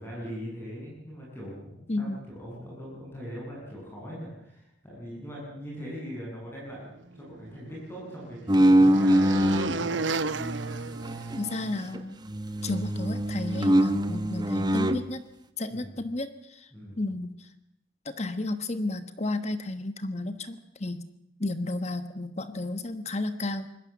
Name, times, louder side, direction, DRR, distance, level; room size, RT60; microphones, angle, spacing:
voice 1, 0.0-10.1 15.7-15.9 16.7-17.0, equal, 15° left, -5 dB, 7.8 m, -40 dB
sound 1, 7.2-11.8, right 4 dB, 85° right, 0.9 m, -34 dB
sound 2, 8.5-9.8 10.3-12.0 12.3-15.0, right 1 dB, 25° right, 1.3 m, -24 dB
voice 2, 11.4-12.2 12.6-15.2 15.6-16.7 17.0-17.5 18.0-21.0 21.4-23.7, left 2 dB, 35° left, 11 dB, 1.2 m, -32 dB
25.0 x 20.5 x 7.3 m, 0.79 s
head